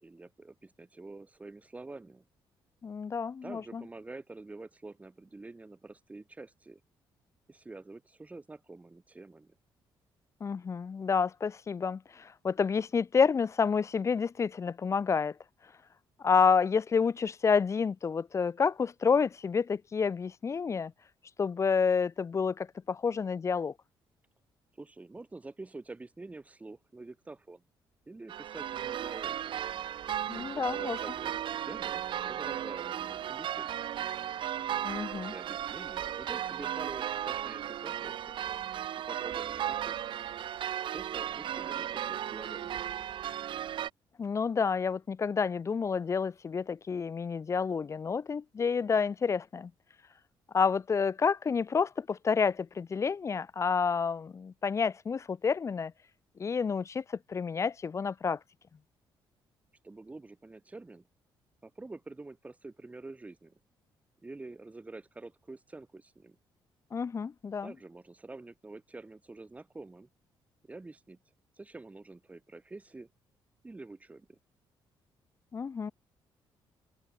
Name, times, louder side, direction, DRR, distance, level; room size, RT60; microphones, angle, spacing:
voice 1, 0.0-2.2 3.4-6.8 7.5-9.5 24.8-27.6 28.1-29.5 30.3-34.1 35.1-38.3 39.1-40.1 40.9-42.8 59.8-61.1 61.6-63.6 64.2-66.4 67.6-70.1 70.7-71.2 71.6-73.1 73.6-74.4, right 3 dB, 15° right, 1.4 m, -47 dB
voice 2, 2.8-3.8 10.4-15.3 16.2-20.9 21.4-23.7 30.3-31.0 34.8-35.3 44.2-49.7 50.5-55.9 56.4-58.4 66.9-67.7 75.5-75.9, left 5 dB, 30° left, 0.9 m, -29 dB
sound 1, 28.3-43.9, right 10 dB, 65° right, 1.4 m, -35 dB
cardioid pair, 125°, 9 cm